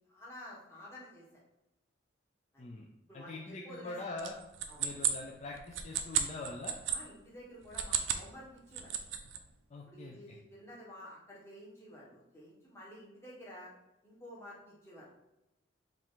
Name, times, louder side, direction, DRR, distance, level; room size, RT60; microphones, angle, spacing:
voice 1, 0.1-1.2 2.5-2.6 3.1-4.2 4.7-4.8 6.9-8.9 9.9-13.7 14.0-15.1, left 1 dB, 15° left, -6 dB, 1.2 m, -51 dB
voice 2, 3.1-4.3 4.8-6.8 9.7-10.4, left 2 dB, 35° left, -1 dB, 0.4 m, -43 dB
sound 1, 4.2-7.0 7.6-8.3 8.6-9.4, right 9 dB, 80° right, 0.5 m, -33 dB
4.8 x 2.5 x 3.7 m, 0.94 s
head